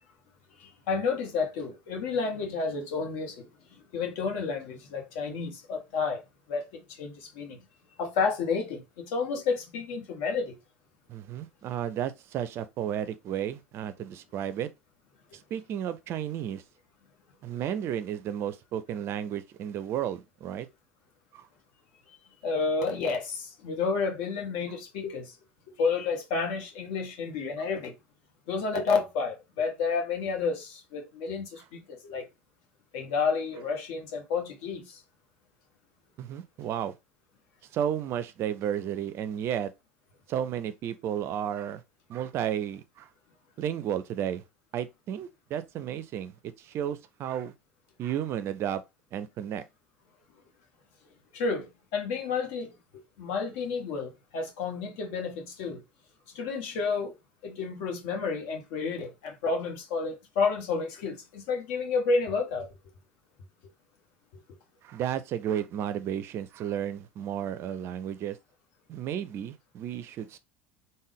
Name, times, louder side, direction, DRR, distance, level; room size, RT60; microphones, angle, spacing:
voice 1, 0.6-6.2 6.5-7.6 8.0-10.5 22.4-25.4 25.7-27.9 28.5-32.2 32.9-35.0 51.3-52.7 53.2-55.8 56.3-57.1 57.4-62.7, left 4 dB, 60° left, 1.0 m, -30 dB
voice 2, 11.1-14.7 15.5-16.6 17.4-20.7 21.3-21.5 36.2-36.9 37.7-39.7 40.3-41.8 42.1-43.1 43.6-44.4 44.7-47.5 48.0-48.8 49.1-49.6 64.8-68.4 68.9-70.4, right 10 dB, 40° right, 0.4 m, -33 dB
3.5 x 2.1 x 3.3 m
figure-of-eight pair, 70°, 6 cm